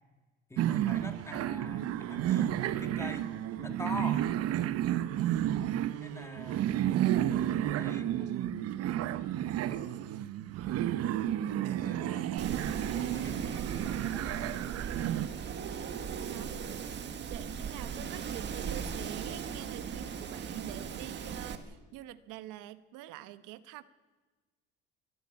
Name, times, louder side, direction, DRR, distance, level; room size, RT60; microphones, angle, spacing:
voice 1, 0.5-4.2 6.0-6.8 7.6-8.6 9.6-10.0 11.7-14.6, left 2 dB, 10° left, 7 dB, 1.6 m, -45 dB
sound 1, 0.6-15.3, right 12 dB, 50° right, 0.9 m, -31 dB
Wind, 12.4-21.5, right 7 dB, 35° right, 1.6 m, -38 dB
voice 2, 16.1-16.5 17.3-23.8, right 13 dB, 80° right, 13 dB, 1.1 m, -46 dB
23.5 x 11.5 x 9.7 m, 1.2 s
cardioid pair, 160°, 31 cm